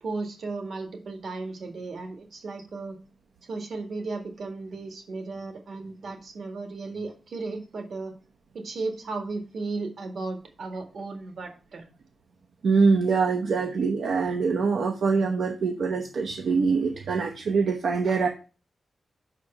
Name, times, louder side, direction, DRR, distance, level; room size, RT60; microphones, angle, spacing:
voice 1, 0.0-3.0 3.4-8.1 8.5-11.9 18.0-18.2, right 3 dB, 60° right, 4 dB, 1.9 m, -35 dB
voice 2, 12.6-18.3, right 4 dB, 75° right, 2 dB, 0.9 m, -24 dB
5.8 x 5.0 x 6.6 m, 0.35 s
wide cardioid pair, 170°, 0 cm